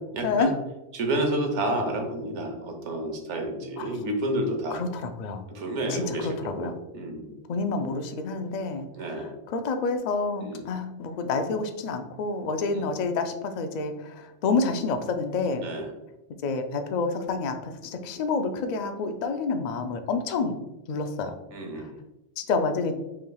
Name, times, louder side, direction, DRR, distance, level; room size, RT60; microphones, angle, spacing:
voice 1, 0.1-0.5 0.9-4.8 5.5-7.4 9.0-9.3 10.4-10.7 12.6-13.0 15.6-15.9 21.5-22.0, right 1 dB, 70° right, 3 dB, 1.1 m, -30 dB
voice 2, 3.8-4.1 4.7-5.4 5.9-6.7 7.5-15.6 16.4-20.6 20.9-21.3 21.8-21.9 22.4-22.9, left 4 dB, 70° left, 7 dB, 0.4 m, -28 dB
5.7 x 3.2 x 2.3 m, 0.99 s
omnidirectional pair, 1.3 m